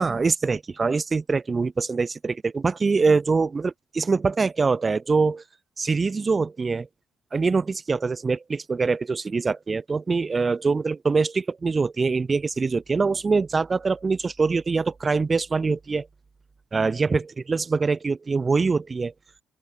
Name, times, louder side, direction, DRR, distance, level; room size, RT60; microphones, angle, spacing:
voice 1, 0.0-5.4 5.8-6.9 7.3-16.1 16.7-17.2 17.5-19.1, right 4 dB, 25° right, 6.8 m, -24 dB
open air
cardioid pair, 120°, 0 cm